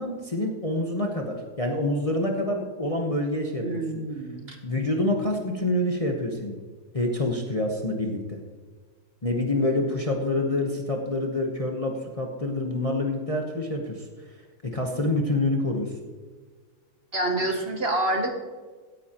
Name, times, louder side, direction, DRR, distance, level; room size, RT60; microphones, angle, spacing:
voice 1, 0.0-3.7 4.6-6.6 6.9-8.4 9.2-14.1 14.7-15.9, left 1 dB, 25° left, 1 dB, 0.9 m, -27 dB
voice 2, 3.6-4.6 17.1-18.3, right 1 dB, 40° right, 3 dB, 1.0 m, -27 dB
16.5 x 9.7 x 2.9 m, 1.5 s
omnidirectional pair, 1.7 m